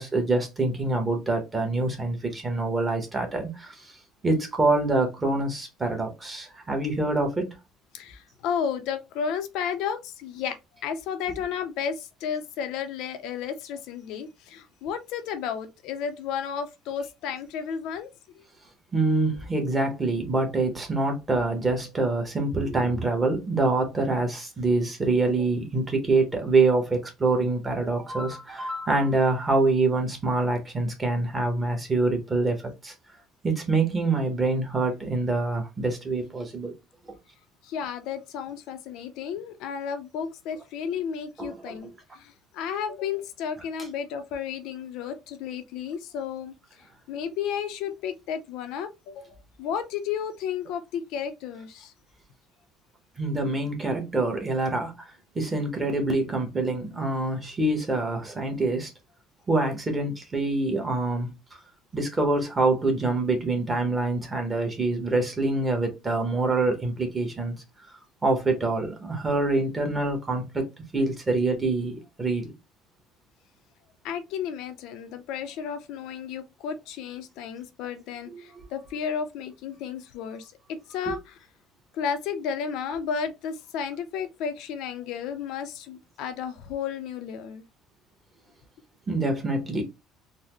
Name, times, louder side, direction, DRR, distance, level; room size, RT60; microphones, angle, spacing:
voice 1, 0.0-3.9 4.2-7.5 18.9-32.9 33.4-36.7 41.4-41.8 53.2-54.9 55.3-58.9 59.5-61.3 61.9-67.5 68.2-72.5 78.3-78.6 81.1-81.2 89.1-89.8, right 2 dB, 15° right, 0.9 m, -25 dB
voice 2, 7.9-10.6 10.8-18.1 37.6-46.5 47.1-51.9 74.0-80.5 80.9-81.4 81.9-87.6, left 7 dB, 70° left, 0.5 m, -33 dB
3.9 x 2.0 x 3.0 m
cardioid pair, 145°, 0 cm